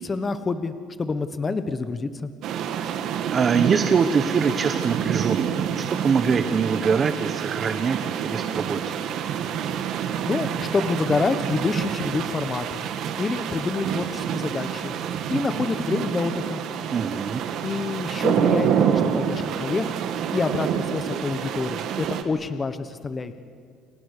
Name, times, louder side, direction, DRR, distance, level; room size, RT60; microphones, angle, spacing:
voice 1, 0.0-2.3 10.3-12.8 13.2-14.9 15.3-16.6 17.6-19.9 20.3-23.3, left 4 dB, 20° left, 10 dB, 1.2 m, -27 dB
sound 1, 2.4-22.2, right 8 dB, 60° right, 2.3 m, -27 dB
voice 2, 3.3-9.0 16.9-17.4, right 5 dB, 30° right, 9 dB, 1.0 m, -24 dB
29.5 x 29.0 x 6.7 m, 2.1 s
cardioid pair, 145°, 0 cm